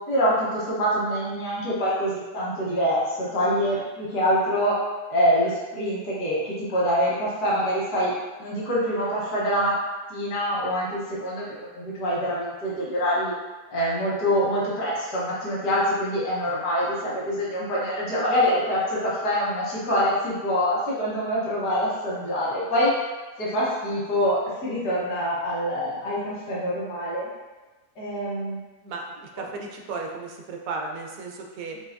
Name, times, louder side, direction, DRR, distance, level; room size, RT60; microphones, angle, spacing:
voice 1, 0.1-4.8 5.1-8.1 8.4-9.7 10.1-13.3 13.7-22.9 23.4-27.3 28.0-28.6, equal, 80° left, -8 dB, 1.8 m, -25 dB
voice 2, 29.4-31.8, right 3 dB, 70° right, 1 dB, 1.0 m, -34 dB
5.5 x 2.8 x 2.6 m, 1.2 s
omnidirectional pair, 1.7 m